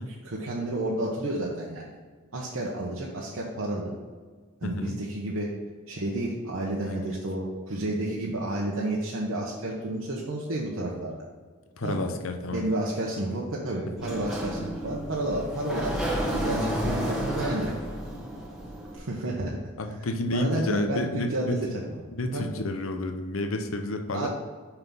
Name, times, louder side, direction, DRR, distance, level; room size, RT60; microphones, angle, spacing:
voice 1, 0.1-1.9 2.3-3.9 4.6-5.5 5.9-11.2 11.8-12.0 12.5-17.7 18.9-19.6 19.9-20.0 20.3-22.0 22.3-22.4 24.1-24.3, right 1 dB, 80° right, -3 dB, 1.0 m, -31 dB
voice 2, 4.6-4.9 6.9-7.0 11.8-12.7 19.8-21.6 22.1-24.3, left 2 dB, 80° left, 5 dB, 0.7 m, -30 dB
Sliding door, 14.0-19.0, equal, ahead, 1.2 m, -31 dB
5.8 x 5.7 x 5.5 m, 1.5 s
head